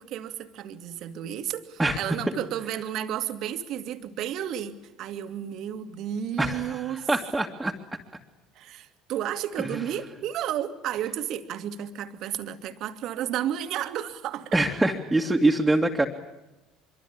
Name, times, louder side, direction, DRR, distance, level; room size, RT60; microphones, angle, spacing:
voice 1, 0.0-7.1 8.6-14.6, right 10 dB, 55° right, 9 dB, 2.1 m, -32 dB
voice 2, 1.8-2.2 6.4-7.7 9.6-9.8 14.5-16.1, right 2 dB, 10° right, -1 dB, 2.5 m, -24 dB
25.5 x 24.0 x 8.6 m, 1.0 s
figure-of-eight pair, 65°, 0 cm